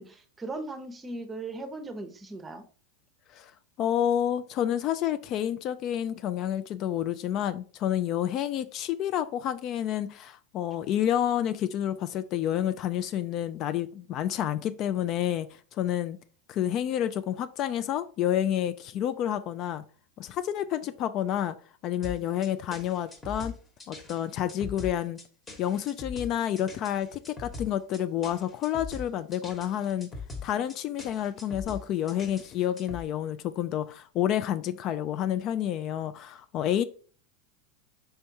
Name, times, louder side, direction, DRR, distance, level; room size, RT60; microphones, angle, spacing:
voice 1, 0.0-2.6, right 2 dB, 20° right, 0.7 m, -38 dB
voice 2, 3.8-16.2 16.5-19.8 20.2-21.5 21.8-23.6 23.9-25.2 25.6-30.1 30.4-36.8, left 10 dB, 45° left, 0.3 m, -29 dB
sound 1, 22.0-33.0, left 4 dB, 20° left, 1.1 m, -42 dB
4.5 x 3.3 x 2.7 m
hypercardioid pair, 105°, 0 cm